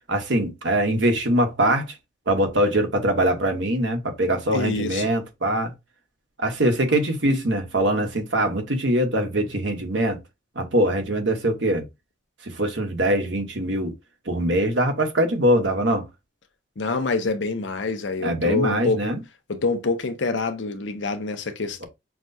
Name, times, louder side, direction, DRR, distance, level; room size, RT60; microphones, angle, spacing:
voice 1, 0.1-1.9 2.3-5.7 6.4-10.2 10.5-11.8 12.4-13.9 14.3-16.1 18.2-19.2, right 1 dB, 70° right, 1.1 m, -22 dB
voice 2, 4.5-5.1 16.8-19.1 19.5-21.9, left 3 dB, 70° left, 0.7 m, -26 dB
5.9 x 2.2 x 2.7 m
head